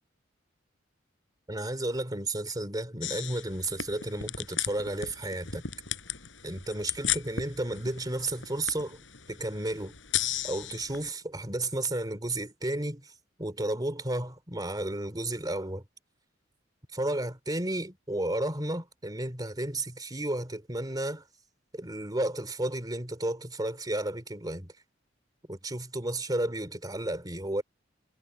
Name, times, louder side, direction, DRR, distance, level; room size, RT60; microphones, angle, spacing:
voice 1, 1.5-5.6 6.4-9.0 9.3-10.0 10.4-13.1 13.4-15.8 16.9-21.2 21.7-24.7 25.5-27.6, right 1 dB, 20° right, 3.0 m, -32 dB
sound 1, 3.0-11.1, left 10 dB, 75° left, 5.5 m, -36 dB
head